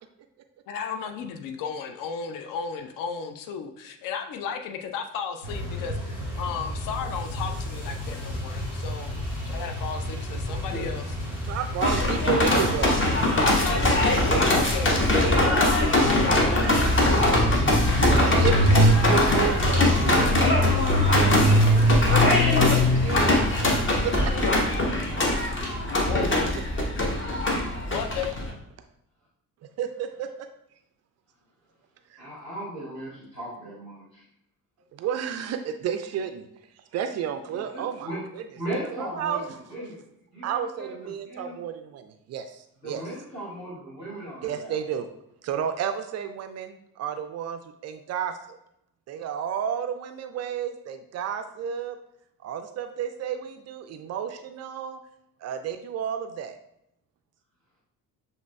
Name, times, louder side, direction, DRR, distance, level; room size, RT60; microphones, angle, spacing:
voice 1, 0.7-9.2 9.4-11.0 13.4-17.2 24.1-24.6 26.1-26.6 27.9-28.4, left 6 dB, 45° left, 6 dB, 0.6 m, -34 dB
sound 1, 5.4-24.0, equal, 70° left, 1.5 m, -26 dB
voice 2, 11.5-12.9 13.7-13.8 14.1-14.7 18.4-20.2 21.7-24.3 29.8-30.3 32.1-32.3 34.9-36.5 36.9-38.1 38.3-38.4 38.9-39.4 40.4-43.0 44.4-45.1 45.4-48.6 49.1-52.0 52.4-55.0 55.4-56.6, right 8 dB, 35° right, 8 dB, 0.4 m, -32 dB
sound 2, 11.8-28.5, left 1 dB, 25° left, 1.0 m, -22 dB
voice 3, 15.8-16.9 17.3-18.8 19.1-19.3 25.1-25.7 32.2-34.2 37.5-38.2 38.5-41.6 42.8-44.8, right 1 dB, 90° left, -9 dB, 1.5 m, -38 dB
7.1 x 3.3 x 2.2 m, 0.79 s
figure-of-eight pair, 40°, 47 cm